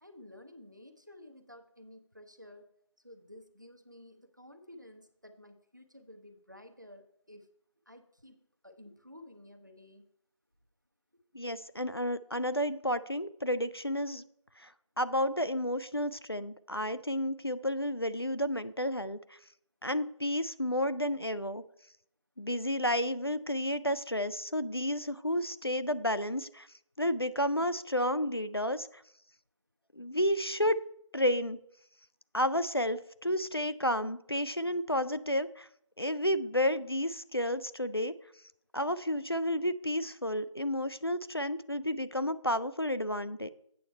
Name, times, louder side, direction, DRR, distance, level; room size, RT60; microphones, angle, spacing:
voice 1, 0.0-2.7 3.0-7.5 7.9-10.1, left 1 dB, 35° right, 6 dB, 0.8 m, -53 dB
voice 2, 11.3-14.2 14.6-14.7 15.0-19.4 19.8-21.6 22.4-26.7 27.0-29.0 29.9-30.8 31.1-31.6 32.3-35.7 36.0-38.1 38.7-43.5, equal, 50° left, 13 dB, 0.4 m, -31 dB
8.5 x 7.1 x 4.4 m, 0.70 s
figure-of-eight pair, 180°, 16 cm